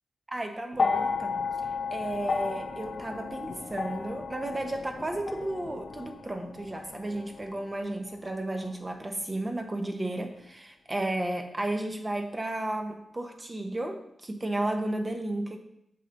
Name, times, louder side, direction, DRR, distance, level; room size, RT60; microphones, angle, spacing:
voice 1, 0.3-1.4 1.9-15.6, right 1 dB, 20° right, 5 dB, 1.1 m, -33 dB
sound 1, 0.7-9.1 10.1-10.2, left 4 dB, 55° left, 0.9 m, -34 dB
8.9 x 7.4 x 4.0 m, 0.77 s
wide cardioid pair, 115°, 0 cm